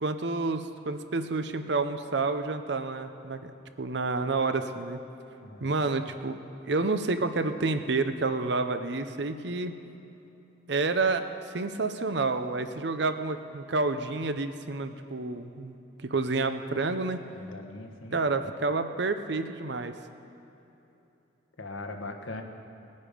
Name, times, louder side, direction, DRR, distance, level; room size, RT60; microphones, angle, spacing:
voice 1, 0.0-3.5 3.8-5.0 5.6-6.4 6.6-9.7 10.7-15.8 16.0-17.3 18.1-19.9, right 3 dB, 60° right, 9 dB, 0.7 m, -29 dB
voice 2, 5.4-6.0 17.3-18.2 21.6-22.4, left 2 dB, 85° left, 4 dB, 1.3 m, -40 dB
20.0 x 9.7 x 5.1 m, 3.0 s
head